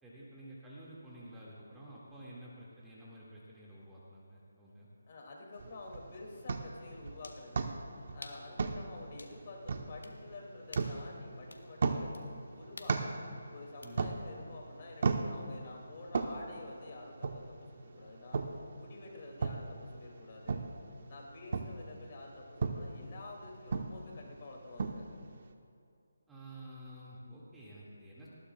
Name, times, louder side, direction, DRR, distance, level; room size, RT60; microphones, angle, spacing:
voice 1, 0.0-4.9 13.0-13.4 13.8-14.0 26.3-28.3, right 1 dB, 5° right, -7 dB, 2.1 m, -51 dB
voice 2, 5.1-7.7 8.1-13.1 13.5-18.5 18.8-20.7 21.1-25.1, left 2 dB, 40° left, 0 dB, 2.5 m, -49 dB
sound 1, 5.5-5.6 7.2-7.5 8.2-8.5 9.2-9.4 10.0-10.2 10.7-11.0 11.5-11.7 12.1-12.2 12.8-13.0 13.8-13.9, left 2 dB, 85° left, 1.4 m, -49 dB
sound 2, 5.6-25.5, right 4 dB, 50° right, 1.0 m, -39 dB
19.5 x 16.5 x 2.4 m, 2.5 s
figure-of-eight pair, 160°, 0 cm